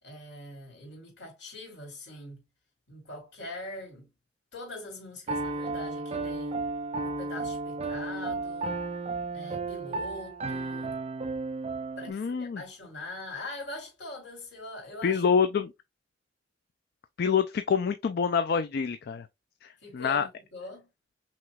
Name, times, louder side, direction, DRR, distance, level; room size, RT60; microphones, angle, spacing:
voice 1, 0.0-2.4 2.9-4.1 4.5-6.6 7.0-8.8 9.3-10.9 12.0-15.2 19.8-20.9, left 2 dB, 75° left, 2.7 m, -42 dB
Piano, 5.3-12.1, right 3 dB, 35° right, 0.5 m, -33 dB
voice 2, 12.1-12.6 15.0-15.7 17.2-19.3 19.6-20.3, left 6 dB, 60° left, 0.4 m, -26 dB
5.9 x 3.0 x 2.3 m
head